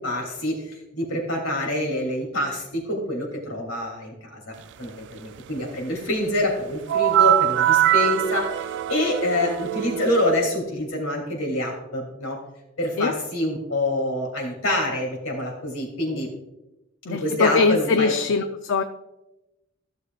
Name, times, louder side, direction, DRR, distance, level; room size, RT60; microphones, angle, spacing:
voice 1, 0.0-4.5 4.8-12.4 12.8-16.3 17.1-18.1, left 1 dB, 85° left, 0 dB, 2.8 m, -26 dB
sound 1, 6.9-10.5, right 13 dB, 60° right, 0.3 m, -22 dB
voice 2, 17.1-18.8, left 4 dB, 65° left, 7 dB, 0.5 m, -22 dB
15.0 x 6.7 x 2.4 m, 0.97 s
head